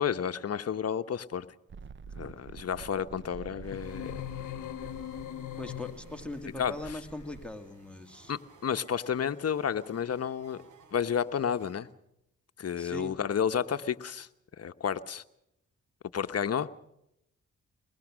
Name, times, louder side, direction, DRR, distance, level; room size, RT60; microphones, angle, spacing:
voice 1, 0.0-1.5 2.2-4.2 6.6-7.0 8.3-10.6 10.9-11.9 12.6-14.3 14.6-15.2 16.1-16.7, left 8 dB, 55° left, 1.1 m, -31 dB
sound 1, 1.7-7.5, right 6 dB, 40° right, 0.7 m, -48 dB
sound 2, 3.6-11.9, right 3 dB, 75° right, 4.5 m, -58 dB
sound 3, 3.7-6.3, left 12 dB, 85° left, 1.0 m, -40 dB
voice 2, 5.6-8.3 12.8-13.2, left 2 dB, 5° left, 2.6 m, -40 dB
23.5 x 20.5 x 6.3 m
supercardioid pair, 55°, 30 cm